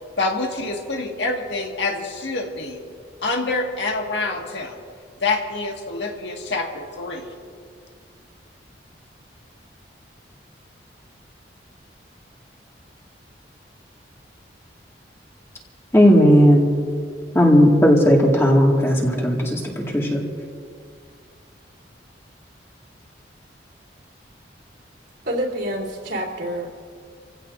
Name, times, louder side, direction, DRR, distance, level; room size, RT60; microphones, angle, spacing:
voice 1, 0.2-2.8 3.2-4.7 5.2-7.3, left 3 dB, 75° left, 1 dB, 1.8 m, -26 dB
voice 2, 15.9-16.7 17.3-20.2, equal, 15° left, -2 dB, 2.0 m, -15 dB
voice 3, 25.2-26.7, right 1 dB, 75° right, -5 dB, 3.3 m, -27 dB
29.0 x 16.0 x 2.6 m, 2.1 s
head